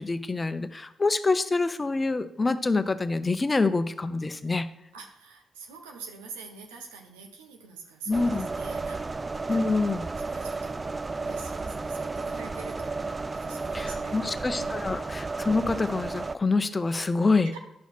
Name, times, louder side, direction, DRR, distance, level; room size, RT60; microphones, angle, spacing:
voice 1, 0.0-4.7 8.1-8.5 9.5-10.1 13.7-17.6, left 3 dB, 30° left, 11 dB, 0.7 m, -26 dB
voice 2, 4.9-9.2 9.5-9.8 10.2-10.8 11.2-13.0 13.3-14.9 17.4-17.6, right 5 dB, 90° right, 3 dB, 1.0 m, -45 dB
sound 1, 8.1-16.3, right 3 dB, 35° right, 0.4 m, -33 dB
10.5 x 5.7 x 4.4 m, 0.81 s
hypercardioid pair, 40°, 0 cm